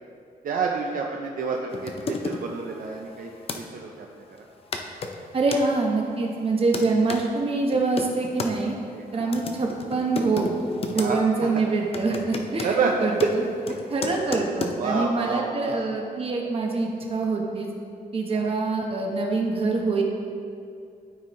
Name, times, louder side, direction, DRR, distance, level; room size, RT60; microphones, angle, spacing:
voice 1, 0.4-4.2 8.9-9.5 10.9-11.6 12.6-13.3 14.6-15.8 18.3-18.5, right 4 dB, 60° right, 0 dB, 0.6 m, -29 dB
sound 1, 1.7-3.6 4.4-4.5 4.7-5.6 6.3-7.2 7.7-8.5 9.2-11.1 11.4-11.6 11.9-14.8, left 4 dB, 35° left, 0.5 m, -34 dB
voice 2, 5.3-8.8 9.1-10.5 10.9-12.7 13.0-13.4 13.9-17.7 18.1-20.0, right 3 dB, 35° right, 0 dB, 1.0 m, -25 dB
13.0 x 4.4 x 3.1 m, 2.4 s
wide cardioid pair, 165°, 16 cm